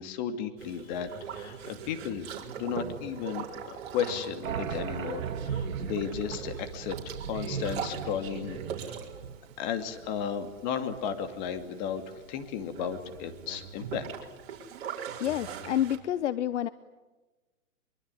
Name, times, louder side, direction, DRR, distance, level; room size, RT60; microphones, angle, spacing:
voice 1, 0.0-2.2 2.6-9.0 9.6-14.1, left 8 dB, 35° left, 8 dB, 2.5 m, -34 dB
Boat Water vehicle, 0.6-16.0, right 7 dB, 50° right, 4.7 m, -42 dB
sound 1, 4.4-9.7, right 7 dB, 85° right, 2.2 m, -37 dB
voice 2, 15.2-16.7, left 11 dB, 60° left, 16 dB, 0.9 m, -28 dB
24.5 x 23.5 x 10.0 m, 1.2 s
hypercardioid pair, 150°, 39 cm